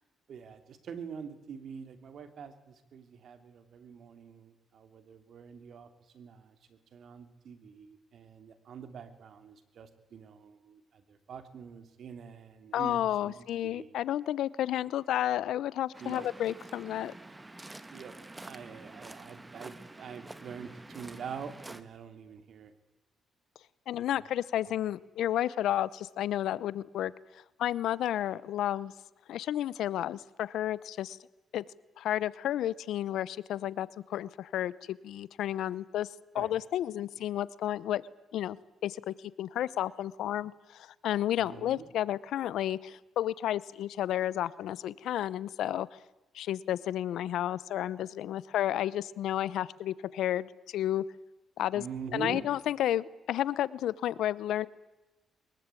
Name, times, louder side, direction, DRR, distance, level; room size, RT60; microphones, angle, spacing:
voice 1, 0.3-5.9 6.1-13.9 16.0-16.3 17.0-17.1 17.9-18.1 18.4-22.7 24.7-24.8 36.3-36.5 41.4-41.9 51.7-52.5, right 6 dB, 60° right, 9 dB, 3.0 m, -45 dB
voice 2, 12.7-17.1 23.9-27.1 27.6-28.9 29.3-31.2 31.5-31.6 32.0-36.1 36.3-38.0 38.3-38.6 38.8-46.0 46.3-51.0 51.6-51.8 52.1-54.7, left 12 dB, 80° left, 20 dB, 0.8 m, -31 dB
Waves surf, 15.9-21.8, right 2 dB, 15° right, 1.7 m, -48 dB
23.0 x 21.0 x 9.1 m, 1.0 s
cardioid pair, 90°, 0 cm